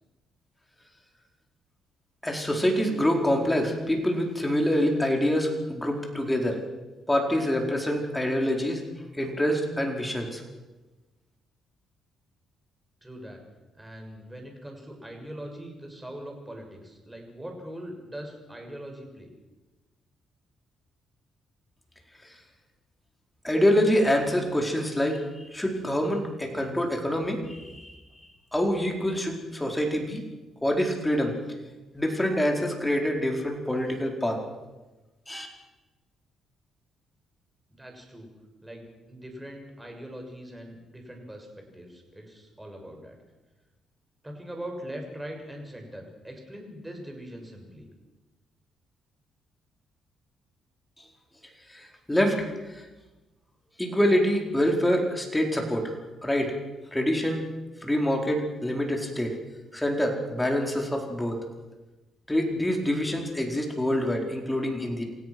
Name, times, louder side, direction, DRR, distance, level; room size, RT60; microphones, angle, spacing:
voice 1, 2.2-6.6 7.1-8.8 9.1-10.4 23.4-25.2 25.5-27.9 28.5-30.2 30.6-31.3 31.9-34.4 35.3-35.5 51.7-52.4 53.8-55.9 56.2-56.6 56.9-57.4 57.8-59.4 59.7-61.4 62.3-65.0, equal, 10° left, 2 dB, 4.5 m, -26 dB
voice 2, 13.0-13.4 13.8-19.3 37.7-38.3 38.6-43.2 44.2-47.9, equal, 10° right, 3 dB, 6.4 m, -41 dB
28.0 x 16.5 x 6.2 m, 1.2 s
cardioid pair, 90°, 0 cm